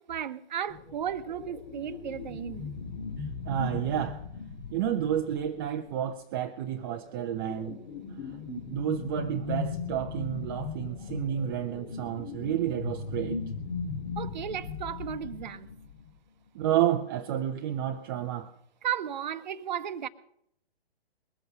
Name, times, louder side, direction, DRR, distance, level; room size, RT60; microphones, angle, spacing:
voice 1, 0.0-2.7 14.2-15.7 18.8-20.1, right 9 dB, 45° right, 0.9 m, -34 dB
sound 1, 0.7-5.9 6.8-16.1, left 4 dB, 55° left, 2.9 m, -38 dB
voice 2, 3.2-4.2 4.7-7.8 8.7-13.4 16.5-18.5, right 10 dB, 20° right, 0.6 m, -30 dB
21.0 x 7.8 x 7.9 m
figure-of-eight pair, 125°, 31 cm